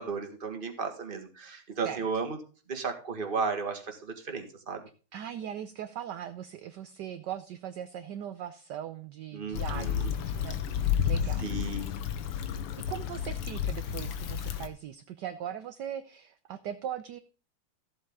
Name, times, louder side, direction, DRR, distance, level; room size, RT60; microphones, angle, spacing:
voice 1, 0.0-2.4 2.7-4.8 9.3-10.1 11.4-11.9, right 4 dB, 25° right, 4 dB, 1.7 m, -34 dB
voice 2, 5.1-11.5 12.8-17.2, right 10 dB, 65° right, 10 dB, 1.1 m, -40 dB
Stream / Traffic noise roadway noise / Trickle dribble, 9.5-14.7, left 9 dB, 80° left, 2.0 m, -31 dB
14.0 x 7.9 x 3.7 m, 0.36 s
omnidirectional pair, 2.4 m